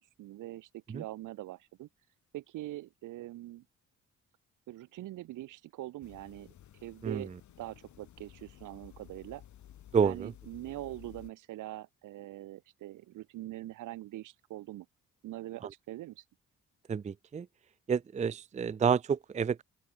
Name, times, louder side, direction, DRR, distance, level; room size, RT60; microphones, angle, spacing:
voice 1, 0.0-1.9 2.3-3.6 4.7-6.5 6.8-7.3 7.6-9.4 10.0-14.9 15.2-16.2, right 15 dB, 90° right, 4.3 m, -43 dB
sound 1, 6.0-11.3, left 11 dB, 70° left, 4.2 m, -55 dB
voice 2, 9.9-10.3 16.9-17.5 17.9-19.6, right 6 dB, 25° right, 0.5 m, -29 dB
open air
cardioid pair, 90°, 30 cm